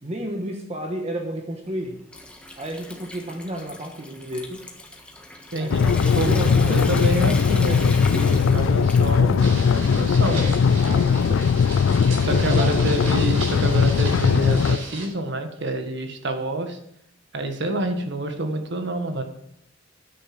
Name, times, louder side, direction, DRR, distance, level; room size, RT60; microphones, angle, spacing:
voice 1, 0.0-2.0 2.6-4.6 5.6-6.8 8.1-8.5 10.3-11.3 12.2-12.7, right 1 dB, 30° right, 2 dB, 1.4 m, -32 dB
Water tap faucet / Sink (filling or washing) / Trickle dribble, 1.7-11.6, left 2 dB, 5° left, 1.4 m, -39 dB
voice 2, 5.5-5.8 6.1-10.4 11.3-11.4 12.2-16.8 17.3-19.2, right 2 dB, 60° right, 6 dB, 1.6 m, -27 dB
sound 1, 5.7-14.8, left 6 dB, 65° left, 0.3 m, -19 dB
sound 2, 9.4-15.1, right 3 dB, 85° right, 4.9 m, -35 dB
10.0 x 9.6 x 5.9 m, 0.75 s
head